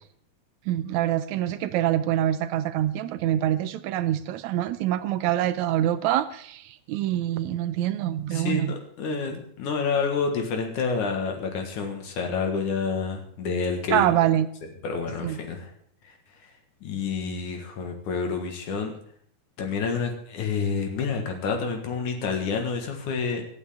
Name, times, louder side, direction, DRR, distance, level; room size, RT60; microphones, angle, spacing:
voice 1, 0.7-8.7 13.9-14.5 15.2-15.4, right 12 dB, 75° right, 13 dB, 1.9 m, -25 dB
voice 2, 8.3-14.1 14.8-15.7 16.1-16.2 16.8-18.9 19.6-23.4, left 5 dB, 75° left, 4 dB, 3.1 m, -28 dB
25.0 x 8.7 x 3.7 m, 0.63 s
omnidirectional pair, 3.6 m